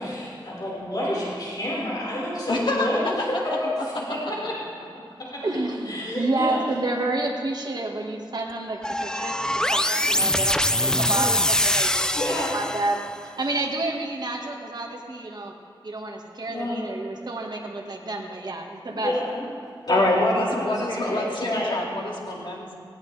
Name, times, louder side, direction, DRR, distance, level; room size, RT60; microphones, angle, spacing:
voice 1, 0.0-4.6 5.3-5.4 5.8-6.6 12.1-12.6 16.5-16.9 18.8-19.5 19.9-21.9, left 1 dB, 50° left, -7 dB, 4.8 m, -29 dB
voice 2, 2.5-2.9 19.9-22.8, left 2 dB, 65° left, -1 dB, 2.3 m, -25 dB
voice 3, 5.4-12.1 12.5-15.5 15.8-19.1, right 2 dB, 50° right, 0 dB, 1.7 m, -29 dB
sound 1, 8.8-13.1, left 1 dB, 10° left, 0.5 m, -23 dB
18.0 x 17.0 x 3.4 m, 2.2 s
wide cardioid pair, 100°, 9 cm